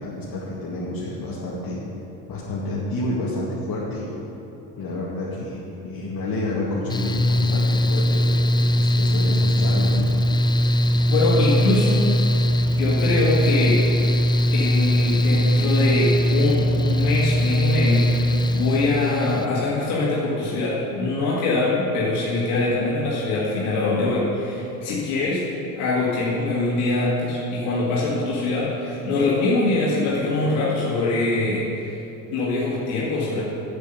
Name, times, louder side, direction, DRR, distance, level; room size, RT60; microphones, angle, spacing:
voice 1, 0.0-1.8 2.3-4.1 4.8-10.2, left 2 dB, 50° left, -7 dB, 2.1 m, -29 dB
Mechanical fan, 6.9-19.5, equal, 10° left, 0.3 m, -20 dB
voice 2, 11.1-12.1 12.4-13.8 14.5-18.2 18.5-25.4 25.8-32.0 32.3-33.4, left 2 dB, 85° left, -6 dB, 1.9 m, -23 dB
8.6 x 8.3 x 5.8 m, 2.9 s
supercardioid pair, 70°, 45 cm